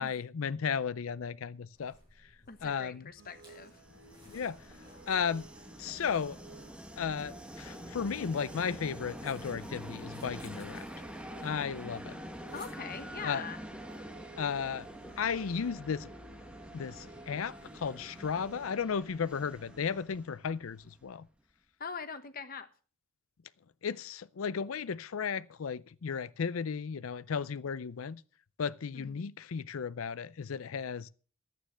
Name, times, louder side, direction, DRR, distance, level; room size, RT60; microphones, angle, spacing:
voice 1, 0.0-2.0 2.6-3.1 4.3-4.6 5.1-5.5 5.8-6.4 7.0-10.9 11.4-12.2 13.2-13.4 14.4-14.9 15.2-16.1 16.7-21.3 23.8-28.2 28.6-31.1, left 6 dB, 85° left, 0.5 m, -34 dB
sound 1, 1.7-13.1, equal, 20° right, 7.4 m, -60 dB
voice 2, 2.5-3.8 12.5-13.6 21.8-22.7 28.9-29.3, left 5 dB, 45° left, 1.1 m, -42 dB
sound 2, 3.2-20.0, right 2 dB, 65° right, 3.0 m, -56 dB
Train, 3.5-21.2, equal, 5° right, 1.1 m, -46 dB
11.5 x 9.3 x 6.3 m
head